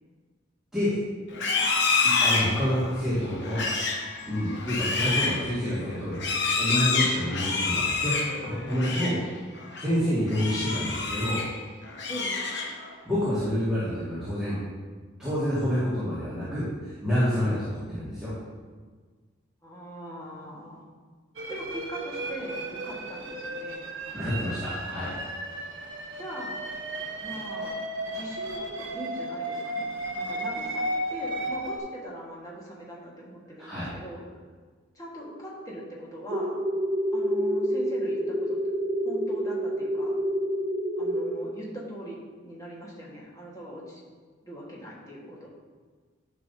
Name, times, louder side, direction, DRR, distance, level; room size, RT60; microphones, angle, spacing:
Livestock farm animals working animals, 1.3-9.2 9.6-9.9 10.3-11.5 11.9-12.9, left 4 dB, 55° left, 0.9 m, -28 dB
voice 1, 2.0-3.7 4.3-9.1 9.8-11.4 13.0-14.6 15.2-18.3 24.1-25.1 33.6-33.9, equal, 5° right, -13 dB, 2.1 m, -28 dB
voice 2, 12.1-12.5 19.6-20.8 21.5-23.8 26.2-26.6 27.2-27.8 28.1-34.2 34.9-36.5 37.1-38.6 39.0-40.1 41.0-42.2 42.4-44.1 44.4-45.5, equal, 15° left, -5 dB, 1.6 m, -41 dB
sound 1, 21.4-31.8, right 1 dB, 65° right, 1.1 m, -34 dB
sound 2, 36.3-41.3, equal, 30° right, 0.8 m, -28 dB
11.0 x 5.7 x 2.8 m, 1.5 s
head